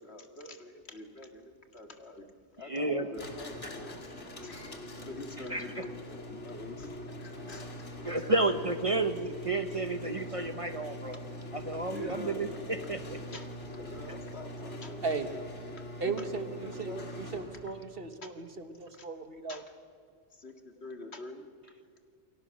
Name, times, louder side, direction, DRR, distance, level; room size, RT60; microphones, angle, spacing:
voice 1, 0.0-2.2 2.6-4.0 4.4-7.0 7.2-7.9 11.5-12.5 13.3-15.4 16.0-17.3 18.2-18.3 18.9-19.1 19.5-19.6 20.4-21.5, left 2 dB, 65° left, 5 dB, 2.4 m, -46 dB
voice 2, 2.6-3.2 3.6-3.8 5.5-5.9 8.0-11.2 11.5-13.4 14.1-14.2, right 2 dB, 30° right, 8 dB, 1.0 m, -32 dB
sound 1, 3.1-17.8, left 1 dB, 90° left, 2.7 m, -43 dB
voice 3, 16.0-19.6, right 4 dB, 55° right, 8 dB, 1.7 m, -36 dB
29.0 x 22.5 x 6.5 m, 2.3 s
omnidirectional pair, 1.2 m